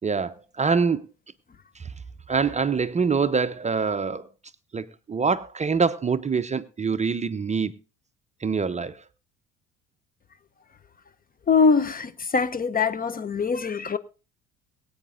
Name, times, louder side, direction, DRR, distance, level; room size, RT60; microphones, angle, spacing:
voice 1, 0.0-1.1 1.8-1.9 2.3-4.3 4.7-7.8 8.4-9.0, right 5 dB, 20° right, 0.6 m, -25 dB
voice 2, 11.5-14.0, left 5 dB, 25° left, 0.7 m, -23 dB
22.5 x 8.6 x 2.5 m
hypercardioid pair, 60°, 35 cm